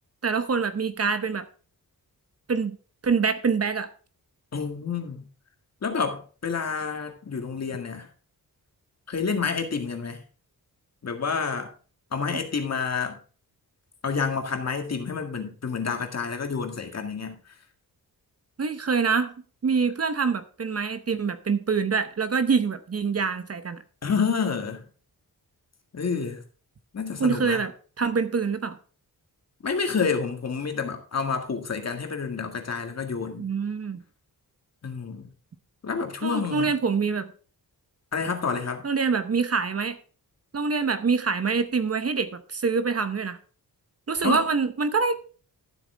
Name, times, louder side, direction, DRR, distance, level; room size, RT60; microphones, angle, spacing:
voice 1, 0.2-1.4 2.5-2.7 3.0-3.9 18.6-19.3 19.6-23.8 27.2-27.7 28.0-28.8 33.4-34.0 36.2-37.3 38.8-40.0 40.5-43.4 44.1-45.2, right 5 dB, 40° right, 1.0 m, -25 dB
voice 2, 4.5-5.3 5.8-8.1 9.1-10.2 11.0-11.7 12.1-13.2 14.0-17.4 24.0-24.8 25.9-26.4 26.9-27.6 29.6-33.5 34.8-35.3 35.8-36.7 38.1-38.8 44.2-44.4, left 5 dB, 45° left, 2.0 m, -29 dB
13.0 x 8.0 x 3.4 m
wide cardioid pair, 175°, 37 cm